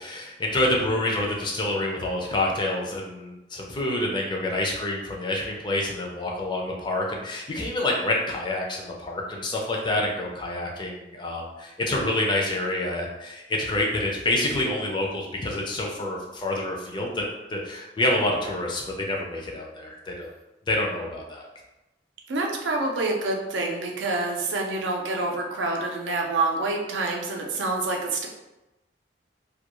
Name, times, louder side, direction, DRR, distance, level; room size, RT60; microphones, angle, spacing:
voice 1, 0.0-17.2 17.5-20.3 20.7-21.5, left 1 dB, 25° left, -1 dB, 0.4 m, -27 dB
voice 2, 22.3-28.3, right 2 dB, 80° right, 1 dB, 0.5 m, -27 dB
2.3 x 2.2 x 2.9 m, 1.0 s
head